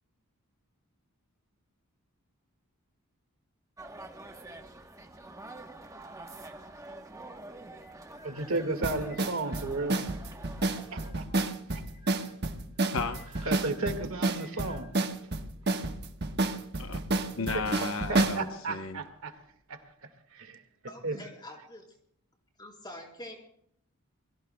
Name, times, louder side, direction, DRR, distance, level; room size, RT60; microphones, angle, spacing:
sound 1, 3.8-11.1, right 2 dB, 15° right, 1.0 m, -47 dB
voice 1, 8.2-10.0 10.9-11.3 11.7-12.2 13.4-14.9 15.3-15.4 15.7-15.8 18.1-19.3 19.7-19.8 20.3-20.6 21.0-21.2, right 2 dB, 65° right, 6 dB, 1.9 m, -34 dB
sound 2, 8.8-18.4, right 2 dB, 50° right, 1.2 m, -30 dB
voice 2, 12.9-13.2 16.8-17.0 17.4-19.0, left 4 dB, 60° left, 7 dB, 0.9 m, -34 dB
voice 3, 20.9-22.0 22.6-23.5, left 1 dB, 20° left, 0 dB, 4.1 m, -46 dB
28.5 x 22.5 x 2.3 m, 0.69 s
head